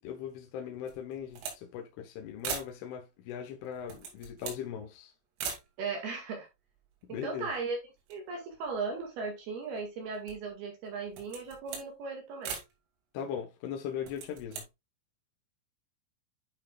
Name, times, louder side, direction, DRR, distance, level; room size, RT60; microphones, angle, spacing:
voice 1, 0.0-5.1 7.0-7.5 13.1-14.6, left 8 dB, 75° left, 3.4 m, -39 dB
sound 1, 0.8-1.6 1.9-2.0 2.4-2.8 3.7-4.7 5.4-5.7 6.5-6.6 6.8-7.7 8.0-9.3 9.8-10.5 11.0-11.9 12.4-12.7 13.9-14.7, right 6 dB, 85° right, 5.3 m, -41 dB
voice 2, 5.8-6.5 7.1-7.8 8.1-12.6, right 4 dB, 60° right, 3.3 m, -37 dB
11.5 x 5.7 x 2.4 m
omnidirectional pair, 5.9 m